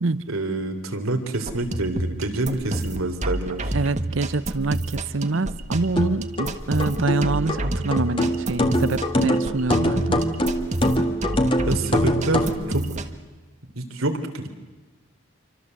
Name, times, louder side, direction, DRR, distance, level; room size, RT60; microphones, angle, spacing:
voice 1, 0.3-3.7 11.7-13.0 13.7-14.5, right 2 dB, 85° right, 5 dB, 3.5 m, -27 dB
sound 1, 1.3-13.1, right 1 dB, 35° right, 1.5 m, -29 dB
voice 2, 3.7-10.3, right 3 dB, 65° right, 17 dB, 0.8 m, -25 dB
sound 2, 6.0-12.6, equal, 25° left, 1.9 m, -23 dB
28.0 x 25.0 x 7.9 m, 1.3 s
head